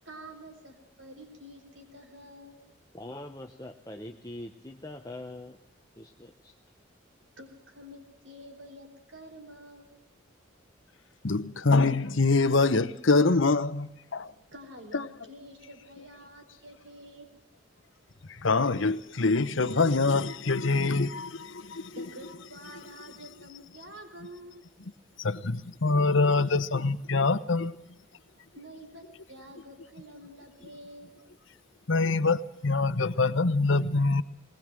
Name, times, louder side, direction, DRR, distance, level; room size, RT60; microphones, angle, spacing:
voice 1, 0.0-2.6 7.4-9.9 14.5-17.3 21.9-24.6 28.5-31.1, equal, 65° right, 4.6 m, -48 dB
voice 2, 2.9-5.6 6.0-6.5, left 1 dB, 15° left, 0.9 m, -43 dB
voice 3, 11.2-14.3 14.9-15.1 18.3-21.9 25.2-27.7 31.9-34.2, left 3 dB, 70° left, 1.0 m, -25 dB
20.5 x 20.0 x 7.6 m
head